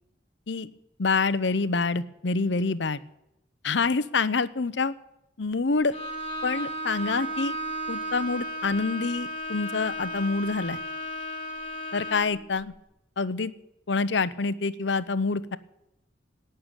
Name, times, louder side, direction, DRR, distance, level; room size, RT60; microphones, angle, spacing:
voice 1, 1.0-3.0 3.6-4.9 5.4-5.9 6.4-7.6 7.9-10.8 11.9-12.7 13.2-13.5 13.9-15.6, left 4 dB, 70° left, 15 dB, 0.7 m, -26 dB
Bowed string instrument, 5.9-12.4, right 1 dB, 30° left, 2.5 m, -34 dB
18.0 x 6.8 x 9.0 m, 0.87 s
head